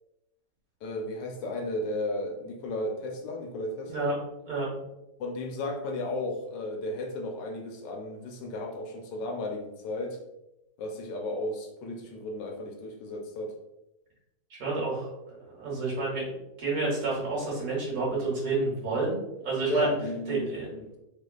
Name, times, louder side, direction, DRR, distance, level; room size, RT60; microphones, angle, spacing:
voice 1, 0.8-4.1 5.2-10.2 10.8-13.5 19.7-20.9, left 1 dB, 80° left, 2 dB, 1.3 m, -34 dB
voice 2, 14.5-19.9 20.3-20.7, right 3 dB, 55° right, -4 dB, 1.6 m, -30 dB
3.7 x 3.3 x 2.3 m, 0.91 s
omnidirectional pair, 1.9 m